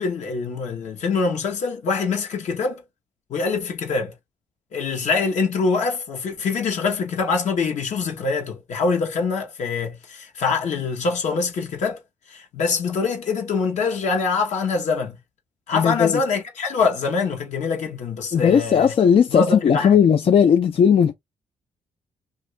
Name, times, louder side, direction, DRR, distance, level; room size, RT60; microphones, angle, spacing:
voice 1, 0.0-2.8 3.3-4.1 4.7-12.0 12.3-15.2 15.7-18.9 19.3-19.9, left 4 dB, 70° left, 1.1 m, -24 dB
voice 2, 15.7-16.2 18.3-21.1, left 7 dB, 50° left, 0.4 m, -17 dB
2.6 x 2.6 x 3.2 m
cardioid pair, 100°, 12 cm